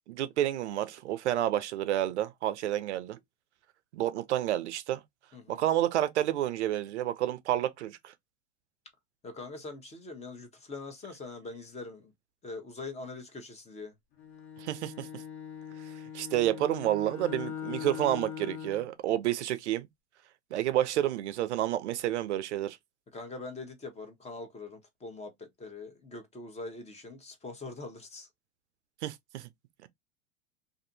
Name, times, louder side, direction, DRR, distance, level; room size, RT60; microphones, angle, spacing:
voice 1, 0.1-3.2 3.9-5.0 5.5-8.1 14.6-15.2 16.1-19.9 20.5-22.8 29.0-29.5, right 12 dB, 80° right, 0.5 m, -30 dB
voice 2, 5.3-5.6 9.2-12.1 12.4-13.9 23.1-28.3, left 3 dB, 20° left, 0.9 m, -43 dB
Bowed string instrument, 14.2-18.9, left 8 dB, 60° left, 1.4 m, -41 dB
2.6 x 2.5 x 2.6 m
hypercardioid pair, 100°, 34 cm